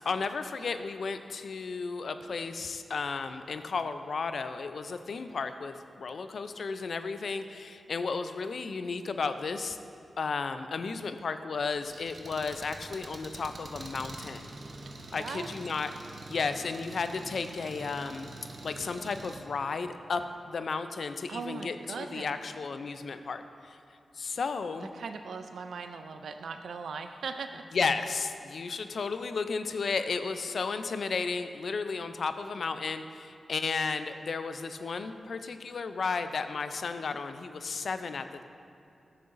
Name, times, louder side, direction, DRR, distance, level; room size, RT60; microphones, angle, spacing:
voice 1, 0.1-9.8 10.2-14.5 15.1-15.9 16.3-18.3 18.6-23.8 24.1-24.9 27.7-38.4, left 4 dB, 70° left, 10 dB, 0.4 m, -33 dB
Engine, 11.6-19.4, right 2 dB, 65° right, 0.7 m, -45 dB
voice 2, 14.9-15.5 21.3-22.4 24.9-27.6, right 5 dB, 80° right, 7 dB, 0.3 m, -39 dB
11.5 x 6.7 x 2.6 m, 2.7 s
cardioid pair, 50°, 0 cm